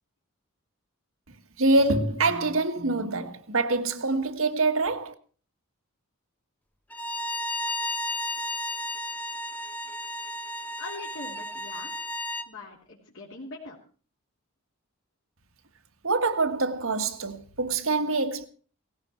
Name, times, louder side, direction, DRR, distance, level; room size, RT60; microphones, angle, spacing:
voice 1, 1.6-5.1 16.0-18.5, right 3 dB, 70° right, 1.6 m, -25 dB
Bowed string instrument, 6.9-12.5, left 1 dB, 5° left, 0.8 m, -33 dB
voice 2, 10.8-11.9 12.5-13.8, left 3 dB, 65° left, 3.3 m, -42 dB
18.0 x 16.0 x 4.5 m
head